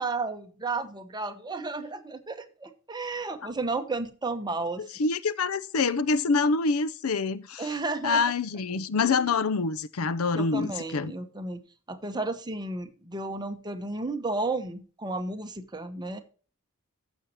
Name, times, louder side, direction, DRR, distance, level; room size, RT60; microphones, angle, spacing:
voice 1, 0.0-4.8 7.6-8.2 9.0-9.3 10.3-11.6 11.9-16.2, right 3 dB, 20° right, 1.1 m, -33 dB
voice 2, 4.8-7.7 8.0-11.1, left 4 dB, 80° left, 0.6 m, -26 dB
14.5 x 6.2 x 2.9 m
head